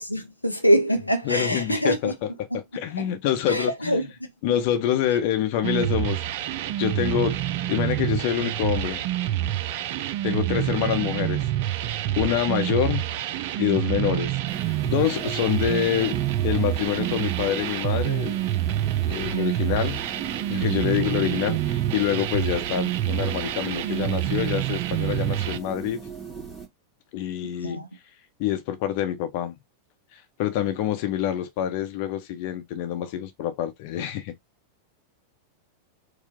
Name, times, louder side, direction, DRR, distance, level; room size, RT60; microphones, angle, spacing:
voice 1, 0.0-2.1 2.5-2.6 3.0-3.1 3.5-4.1 27.6-27.9, equal, 90° left, 0.6 m, -24 dB
voice 2, 1.2-4.0 4.4-6.2 6.7-7.4 7.7-9.1 10.2-11.5 12.2-13.1 13.6-18.4 19.0-20.0 20.5-26.1 27.1-27.8 28.4-29.5 30.1-34.3, left 11 dB, 45° left, 0.8 m, -26 dB
sound 1, 5.6-25.6, right 13 dB, 50° right, 0.4 m, -27 dB
sound 2, 14.5-26.7, right 6 dB, 5° right, 1.8 m, -38 dB
4.5 x 2.2 x 3.7 m
figure-of-eight pair, 90°, 0 cm